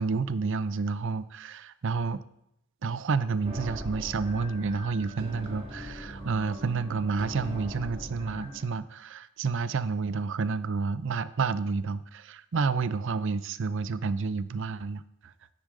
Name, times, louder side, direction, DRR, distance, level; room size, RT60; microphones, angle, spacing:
voice 1, 0.0-2.2 2.8-15.3, right 4 dB, 60° right, 15 dB, 0.5 m, -30 dB
sound 1, 3.4-8.6, equal, 25° right, 1.9 m, -40 dB
10.0 x 9.4 x 3.8 m, 0.79 s
head